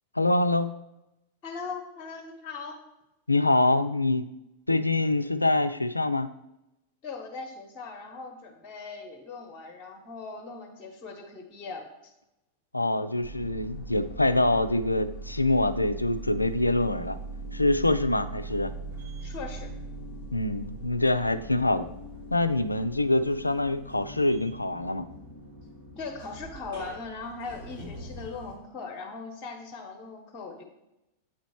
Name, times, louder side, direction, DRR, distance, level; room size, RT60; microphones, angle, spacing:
voice 1, 0.2-0.7 3.3-4.3 4.7-6.3 12.7-17.2 17.5-18.7 20.3-21.9 22.3-25.1, left 2 dB, 85° left, 12 dB, 0.3 m, -25 dB
voice 2, 1.4-2.8 7.0-12.1 19.2-19.7 26.0-30.6, left 4 dB, 30° left, 1 dB, 0.9 m, -39 dB
sound 1, 13.2-28.6, right 2 dB, 60° right, 1.7 m, -41 dB
8.5 x 3.1 x 4.3 m, 0.90 s
figure-of-eight pair, 90°, 0 cm